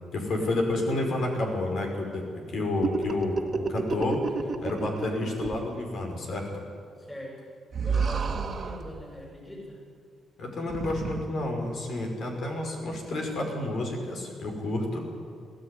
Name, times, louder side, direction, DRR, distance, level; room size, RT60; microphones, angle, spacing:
voice 1, 0.1-6.6 10.4-15.0, left 2 dB, 60° left, 2 dB, 5.3 m, -30 dB
sound 1, 2.8-5.1 5.4-5.6 7.7-8.9 10.7-11.2, right 5 dB, 45° right, 2.0 m, -30 dB
voice 2, 7.0-7.4 7.8-9.8, equal, 15° left, -1 dB, 7.2 m, -41 dB
20.5 x 15.5 x 9.9 m, 2.2 s
cardioid pair, 90°, 0 cm